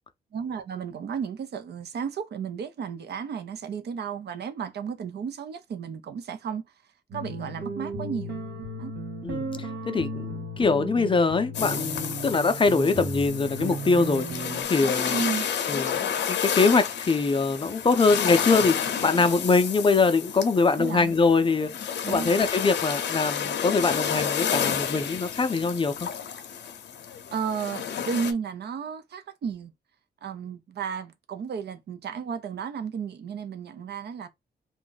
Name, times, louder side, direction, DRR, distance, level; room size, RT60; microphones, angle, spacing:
voice 1, 0.3-6.6 7.1-8.4 8.8-8.9 15.1-15.5 20.7-21.2 22.0-22.4 27.3-29.7 30.2-34.3, right 6 dB, 70° right, 0.6 m, -33 dB
sound 1, 7.1-14.6, right 2 dB, 90° right, 0.9 m, -35 dB
voice 2, 9.2-10.3 10.6-15.2 15.7-21.7 22.1-26.1, left 4 dB, 30° left, 0.5 m, -23 dB
sound 2, 11.5-28.3, left 8 dB, 80° left, 0.6 m, -31 dB
2.5 x 2.2 x 3.8 m
cardioid pair, 105°, 18 cm